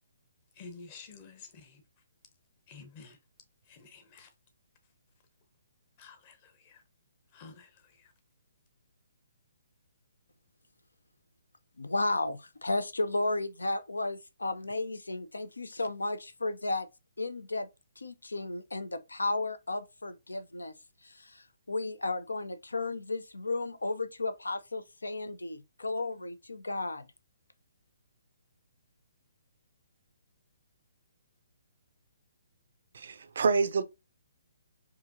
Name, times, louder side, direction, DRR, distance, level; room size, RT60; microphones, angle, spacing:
voice 1, 0.6-1.8 2.7-3.2 3.7-4.3 6.0-6.8 7.3-7.7, left 4 dB, 35° left, 1.0 m, -50 dB
voice 2, 11.8-16.9 17.2-17.7 18.0-20.7 21.0-27.1, left 2 dB, 75° left, 0.5 m, -34 dB
voice 3, 32.9-33.8, right 4 dB, 55° right, 0.4 m, -27 dB
4.8 x 2.7 x 2.6 m
figure-of-eight pair, 130°, 0 cm